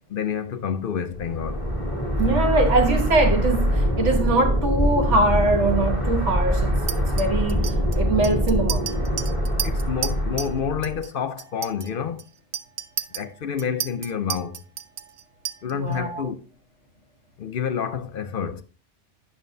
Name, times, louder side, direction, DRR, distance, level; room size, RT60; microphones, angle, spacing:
voice 1, 0.1-1.6 9.6-12.2 13.1-14.6 15.6-16.5 17.4-18.6, left 7 dB, 60° left, 0.7 m, -28 dB
sound 1, 1.2-11.0, equal, 30° right, 1.5 m, -24 dB
voice 2, 2.2-7.6 7.9-8.9 15.7-16.3, right 2 dB, 90° right, 1.5 m, -22 dB
Chink clink, 6.9-10.6 10.8-11.1 11.4-15.9, right 9 dB, 60° right, 0.4 m, -33 dB
9.3 x 6.2 x 2.6 m
omnidirectional pair, 1.2 m